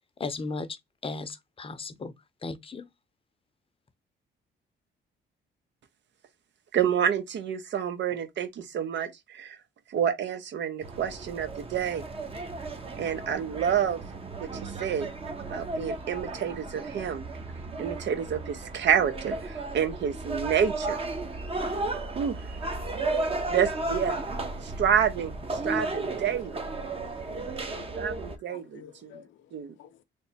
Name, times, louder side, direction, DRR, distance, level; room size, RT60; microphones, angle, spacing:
voice 1, 0.2-0.7 1.0-2.1 2.4-2.9, left 3 dB, 30° left, 0.6 m, -35 dB
voice 2, 6.7-9.6 9.9-12.0 13.0-14.0 14.4-15.1 15.5-17.2 17.8-21.0 22.2-22.4 23.5-24.2 24.6-26.6 28.0-29.1 29.5-29.7, right 8 dB, 65° right, 0.7 m, -28 dB
sound 1, 10.8-28.4, right 2 dB, 30° right, 0.7 m, -34 dB
voice 3, 22.8-23.5 24.6-24.8 25.8-26.1 26.8-27.4 27.7-27.9 28.5-30.0, left 9 dB, 75° left, 0.7 m, -52 dB
3.4 x 2.0 x 4.1 m
cardioid pair, 90°, 20 cm